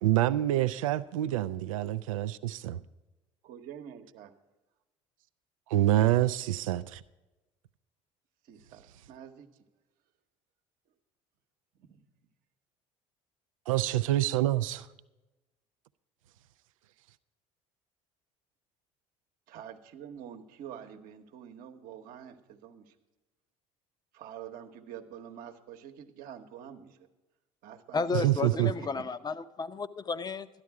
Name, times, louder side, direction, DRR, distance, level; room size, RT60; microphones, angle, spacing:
voice 1, 0.0-2.8 5.7-7.0 13.7-14.9 28.1-28.7, right 14 dB, 80° right, 0.4 m, -27 dB
voice 2, 3.4-4.3 8.5-9.5 11.8-12.0 19.5-22.8 24.1-27.0 27.6-29.0, right 9 dB, 60° right, 1.1 m, -46 dB
voice 3, 27.9-30.5, left 5 dB, 25° left, 0.7 m, -33 dB
13.0 x 10.5 x 4.7 m
hypercardioid pair, 65°, 17 cm